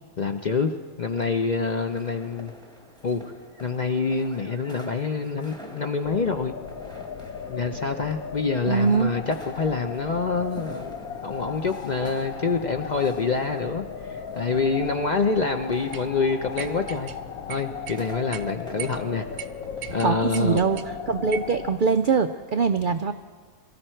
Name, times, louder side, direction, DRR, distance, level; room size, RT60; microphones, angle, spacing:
voice 1, 0.2-0.7 1.0-2.5 3.0-3.3 3.6-6.5 7.5-10.9 11.2-17.1 17.5-19.3 19.9-20.6, left 4 dB, 50° left, 5 dB, 0.5 m, -26 dB
sound 1, 1.1-20.8, equal, 5° left, 1.1 m, -47 dB
sound 2, 6.0-21.8, left 7 dB, 80° left, 1.2 m, -37 dB
voice 2, 8.6-9.1 20.0-20.8 21.1-23.1, right 5 dB, 80° right, 9 dB, 0.4 m, -22 dB
sound 3, 15.9-16.1 16.6-17.2 17.5-18.0 18.3-18.4 18.8-19.0 19.4-19.5 19.8-20.9 21.3-21.5, right 10 dB, 60° right, 0.8 m, -37 dB
23.0 x 14.0 x 4.5 m, 1.5 s
omnidirectional pair, 1.5 m